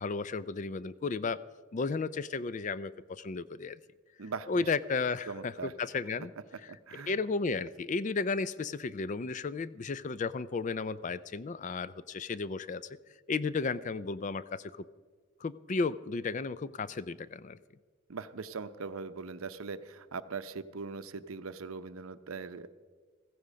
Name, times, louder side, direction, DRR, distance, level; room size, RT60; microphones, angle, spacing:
voice 1, 0.0-1.4 1.7-3.8 4.5-6.3 6.6-12.8 13.3-14.7 15.4-17.6, left 4 dB, 35° left, 16 dB, 0.4 m, -34 dB
voice 2, 4.2-4.5 5.3-5.7 6.7-7.2 18.1-22.7, right 4 dB, 85° right, 12 dB, 0.7 m, -40 dB
15.5 x 15.0 x 5.1 m, 1.5 s
head